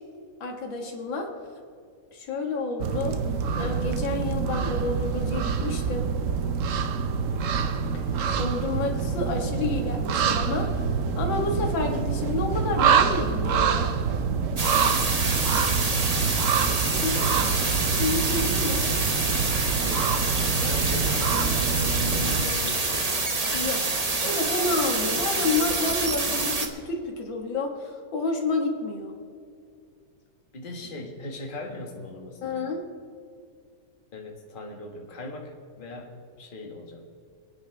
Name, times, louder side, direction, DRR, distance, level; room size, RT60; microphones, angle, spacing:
voice 1, 0.4-1.3 2.1-3.2 3.6-6.0 7.9-8.0 8.4-10.7 11.2-13.9 17.0-17.1 18.0-18.8 23.5-29.1 32.4-32.8, left 3 dB, 85° left, 2 dB, 2.4 m, -29 dB
sound 1, 2.8-22.5, right 6 dB, 60° right, 0.9 m, -26 dB
sound 2, 14.6-26.7, right 3 dB, 25° right, 0.9 m, -27 dB
voice 2, 16.8-17.7 19.6-20.1 20.6-23.1 25.0-25.4 30.5-32.7 34.1-37.1, left 2 dB, 30° left, 1 dB, 1.6 m, -39 dB
27.0 x 9.5 x 3.4 m, 2.4 s
omnidirectional pair, 2.0 m